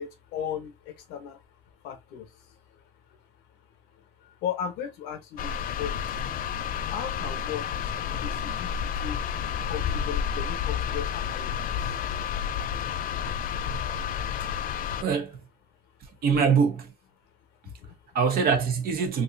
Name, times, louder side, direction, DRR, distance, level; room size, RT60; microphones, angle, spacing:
voice 1, 0.0-12.0 17.6-18.0, left 8 dB, 90° left, 1.0 m, -38 dB
sound 1, 5.4-15.0, left 8 dB, 55° left, 0.4 m, -30 dB
voice 2, 15.0-15.4 16.2-16.9 18.1-19.2, right 6 dB, 60° right, 1.0 m, -23 dB
3.5 x 2.6 x 2.6 m
cardioid pair, 110°, 17 cm